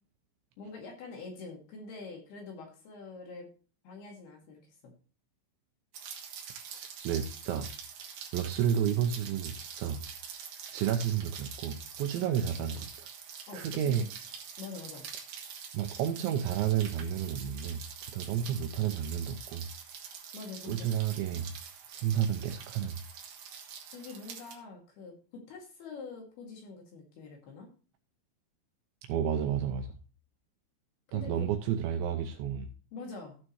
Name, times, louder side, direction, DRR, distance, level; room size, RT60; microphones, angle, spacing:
voice 1, 0.6-3.5 3.8-4.9 12.1-12.3 13.5-14.1 14.6-15.1 20.3-20.9 23.9-25.1 25.5-27.7 31.1-31.5 32.9-33.4, left 4 dB, 60° left, 1 dB, 3.5 m, -45 dB
Rain, 5.9-24.6, right 7 dB, 65° right, 2.2 m, -45 dB
voice 2, 6.7-7.7 8.3-10.0 10.7-13.1 13.5-14.1 15.7-17.8 18.1-19.7 20.6-21.5 21.9-23.0 29.1-29.9 31.1-32.7, right 9 dB, 90° right, 5 dB, 2.6 m, -31 dB
15.5 x 6.3 x 3.0 m, 0.37 s
omnidirectional pair, 5.9 m